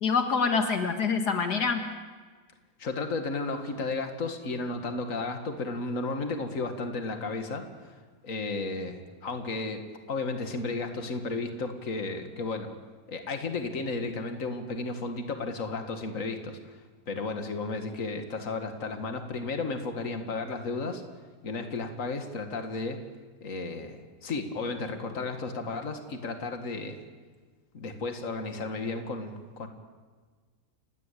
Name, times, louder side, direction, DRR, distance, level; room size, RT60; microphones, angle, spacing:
voice 1, 0.0-1.8, left 5 dB, 75° left, 6 dB, 2.3 m, -26 dB
voice 2, 2.8-12.7 13.1-16.8 17.1-21.0 21.4-23.0 23.4-27.0 27.7-29.7, left 3 dB, 55° left, 6 dB, 2.4 m, -33 dB
29.5 x 17.5 x 8.4 m, 1.5 s
omnidirectional pair, 1.7 m